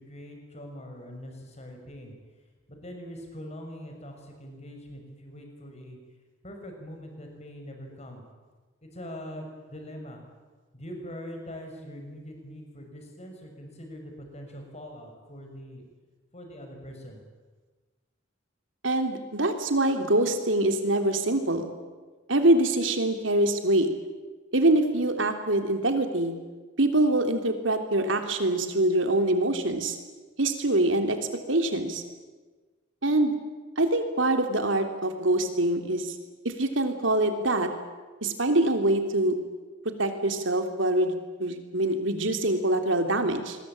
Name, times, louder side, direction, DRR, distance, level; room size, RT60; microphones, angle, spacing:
voice 1, 0.0-2.1 2.7-6.0 6.4-8.2 8.8-10.2 10.7-15.9 16.3-17.2, equal, 35° left, 3 dB, 6.3 m, -42 dB
voice 2, 18.8-21.7 22.3-23.9 24.5-26.3 26.8-30.0 30.4-31.2 31.5-32.0 33.0-33.3 33.8-36.1 36.4-37.7 38.2-39.3 39.8-43.6, right 1 dB, 75° right, 6 dB, 3.4 m, -24 dB
26.5 x 22.0 x 8.9 m, 1.3 s
head